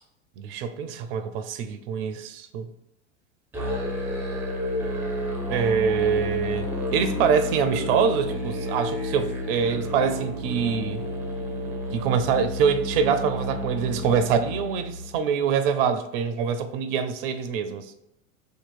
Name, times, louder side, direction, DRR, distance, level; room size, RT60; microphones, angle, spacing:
voice 1, 0.4-2.7 5.5-11.0 11.9-17.9, right 6 dB, 45° right, 9 dB, 0.5 m, -25 dB
Musical instrument, 3.5-15.1, left 1 dB, 5° right, 0.7 m, -31 dB
2.8 x 2.5 x 4.3 m, 0.80 s
figure-of-eight pair, 90°, 39 cm